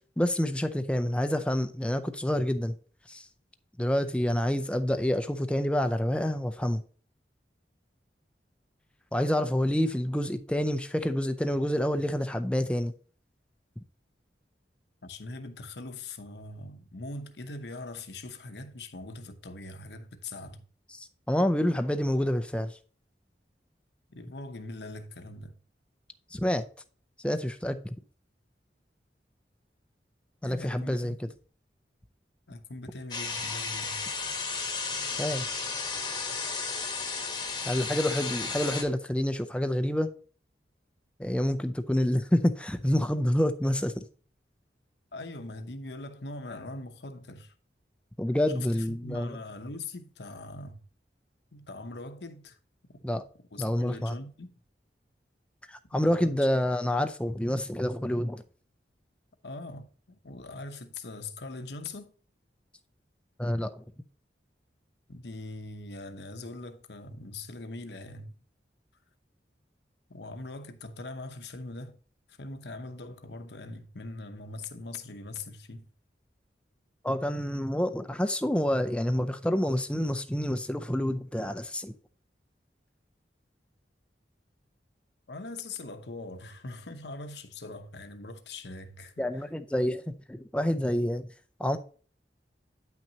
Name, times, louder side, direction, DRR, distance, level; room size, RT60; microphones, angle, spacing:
voice 1, 0.2-2.7 3.1-3.3 3.8-6.8 9.1-12.9 21.0-22.8 26.3-26.6 27.2-27.9 30.4-31.1 35.2-35.5 37.7-40.1 41.2-44.1 48.2-49.3 53.0-53.2 53.6-54.1 55.7-58.4 63.4-63.8 77.0-81.9 89.2-91.3 91.6-91.8, left 1 dB, 5° left, 0.4 m, -28 dB
voice 2, 15.0-20.6 24.1-25.6 30.4-31.2 32.5-34.0 45.1-47.5 48.5-50.8 51.5-52.6 53.5-54.5 56.0-56.7 59.4-62.1 65.1-68.3 70.1-72.0 72.3-75.9 85.3-89.5, left 2 dB, 75° left, 0.9 m, -42 dB
sound 1, 33.1-38.8, left 4 dB, 25° left, 1.0 m, -33 dB
9.1 x 5.9 x 2.8 m
head